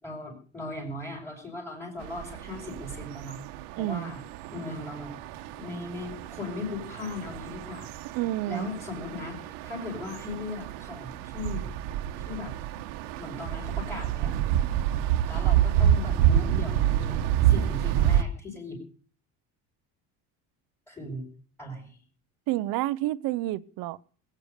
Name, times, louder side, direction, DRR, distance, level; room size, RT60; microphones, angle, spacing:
voice 1, 0.0-3.4 3.8-4.2 4.5-5.1 5.6-8.2 8.5-11.7 12.3-12.5 13.2-14.3 15.2-18.8 20.9-21.3 21.6-22.0, left 2 dB, 5° left, 5.0 m, -38 dB
sound 1, 2.0-18.2, right 11 dB, 85° right, 1.4 m, -28 dB
voice 2, 3.8-4.1 8.1-8.7 22.5-24.0, right 16 dB, 60° right, 0.9 m, -29 dB
20.5 x 8.9 x 6.6 m
cardioid pair, 165°, 40 cm